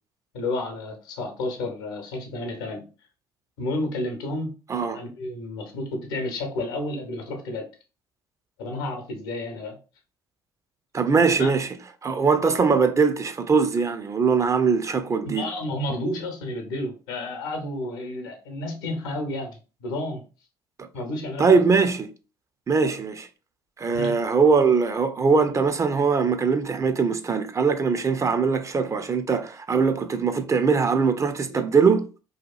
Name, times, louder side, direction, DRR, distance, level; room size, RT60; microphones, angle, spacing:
voice 1, 0.3-2.8 3.6-4.5 4.9-7.7 8.6-9.8 11.4-11.5 15.3-20.2 20.9-21.6 23.9-24.1 31.5-31.6, left 1 dB, 80° left, 0.7 m, -31 dB
voice 2, 4.7-5.0 10.9-11.7 12.0-15.4 21.4-22.1 22.7-23.3 23.8-32.1, right 5 dB, 25° right, 0.4 m, -21 dB
2.8 x 2.3 x 2.3 m
hypercardioid pair, 60°, 12 cm